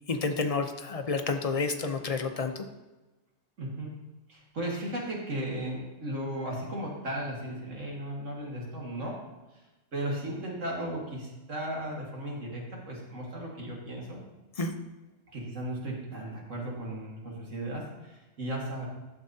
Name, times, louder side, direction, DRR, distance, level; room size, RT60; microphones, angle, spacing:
voice 1, 0.1-2.6 14.6-14.7, left 4 dB, 45° left, 6 dB, 0.5 m, -30 dB
voice 2, 3.6-9.2 9.9-14.2 15.3-18.9, right 1 dB, 80° right, -3 dB, 2.2 m, -36 dB
11.5 x 6.9 x 2.7 m, 1.1 s
omnidirectional pair, 1.3 m